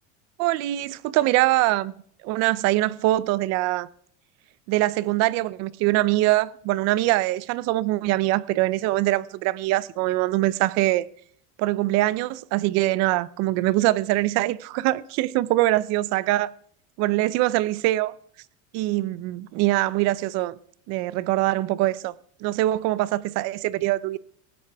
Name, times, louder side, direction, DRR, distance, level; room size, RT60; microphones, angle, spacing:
voice 1, 0.4-1.9 2.2-3.9 4.7-11.1 11.6-16.5 17.0-18.1 18.7-20.5 20.9-22.1 22.4-24.2, right 17 dB, 50° right, 0.7 m, -23 dB
18.5 x 15.0 x 3.5 m
cardioid pair, 165°, 34 cm